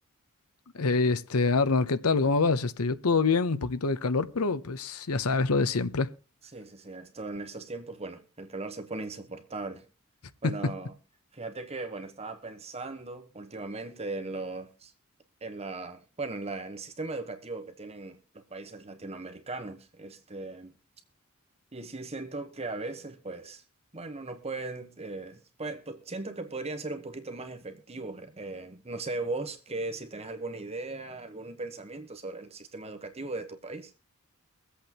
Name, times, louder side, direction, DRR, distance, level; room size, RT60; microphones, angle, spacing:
voice 1, 0.7-6.1 10.4-10.7, left 4 dB, 80° left, 0.8 m, -26 dB
voice 2, 6.5-9.9 10.4-10.9 11.3-14.9 15.4-20.7 21.7-23.6 23.9-33.9, right 3 dB, 30° right, 1.1 m, -38 dB
24.0 x 8.3 x 3.0 m
head